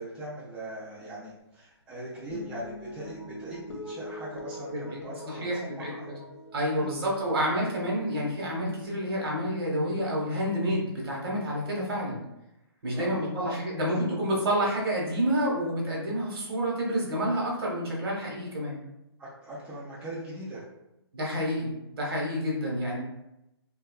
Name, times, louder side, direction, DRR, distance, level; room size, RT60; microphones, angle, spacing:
voice 1, 0.0-6.1 6.7-7.2 12.8-13.6 13.9-14.0 19.2-20.7, right 1 dB, 5° right, -8 dB, 0.3 m, -40 dB
sound 1, 2.3-8.9, left 1 dB, 80° left, 0.6 m, -44 dB
voice 2, 4.7-6.2 6.5-12.2 12.8-18.8 21.1-23.0, equal, 60° right, -3 dB, 1.0 m, -29 dB
2.7 x 2.3 x 2.3 m, 0.89 s
hypercardioid pair, 145°, 14 cm